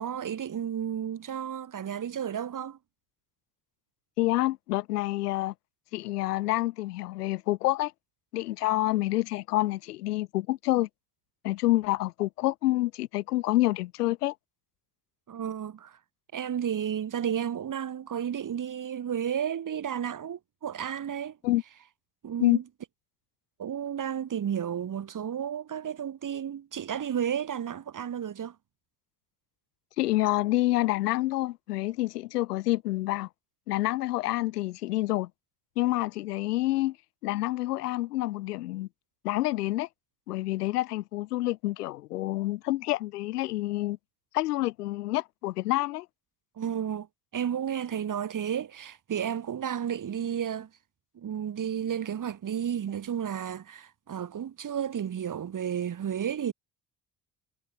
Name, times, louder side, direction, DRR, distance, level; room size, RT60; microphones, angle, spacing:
voice 1, 0.0-2.8 15.3-16.0 16.3-21.4 22.2-22.6 23.6-28.6 46.6-47.1 47.3-50.7 51.2-56.5, right 9 dB, 40° right, 3.6 m, -32 dB
voice 2, 4.2-5.5 5.9-7.9 8.3-10.9 11.4-14.3 21.4-21.6 22.4-22.6 30.0-33.3 33.7-35.3 35.8-37.0 37.2-38.9 39.2-39.9 40.3-44.0 44.3-46.1, left 17 dB, 80° left, 1.6 m, -28 dB
hypercardioid pair, 60°, 46 cm